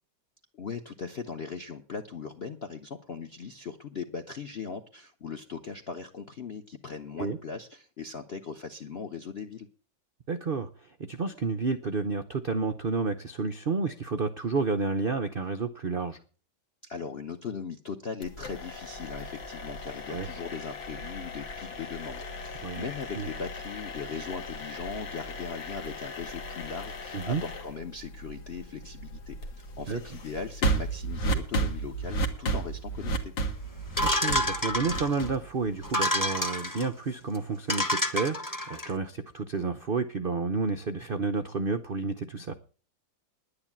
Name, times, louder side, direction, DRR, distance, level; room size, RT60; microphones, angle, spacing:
voice 1, 0.5-9.7 16.8-33.3, left 5 dB, 45° left, 8 dB, 0.8 m, -39 dB
voice 2, 10.3-16.2 20.1-20.3 22.6-22.9 23.2-23.3 27.1-27.4 29.9-30.0 34.2-38.4 38.7-42.5, right 4 dB, 75° right, 10 dB, 0.5 m, -30 dB
sound 1, 18.2-36.1, right 2 dB, 85° left, 2.4 m, -35 dB
sound 2, 34.0-35.3 35.8-36.9 37.3-37.4 37.7-38.9, left 1 dB, 10° left, 1.3 m, -28 dB
10.5 x 9.9 x 7.2 m, 0.40 s
omnidirectional pair, 2.0 m